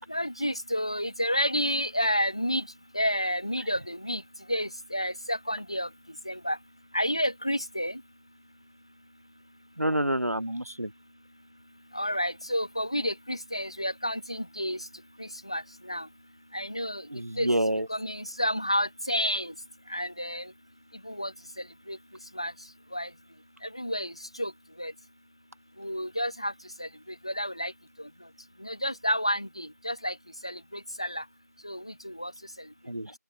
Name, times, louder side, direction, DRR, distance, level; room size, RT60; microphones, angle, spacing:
voice 1, 0.1-2.7 2.9-4.2 4.5-5.9 6.3-6.6 6.9-8.0 11.9-14.9 15.2-16.1 16.5-17.1 17.4-17.5 17.9-19.5 19.9-20.5 21.0-22.0 22.3-22.5 22.9-23.1 23.6-24.5 24.8-24.9 25.8-26.5 26.8-27.7 28.0-28.1 28.6-30.2 30.4-31.2 31.6-32.3 32.6-32.7, equal, 20° left, 1.8 m, -30 dB
voice 2, 9.8-10.9 17.1-17.9 32.9-33.1, right 1 dB, 60° right, 1.2 m, -28 dB
figure-of-eight pair, 180°, 9 cm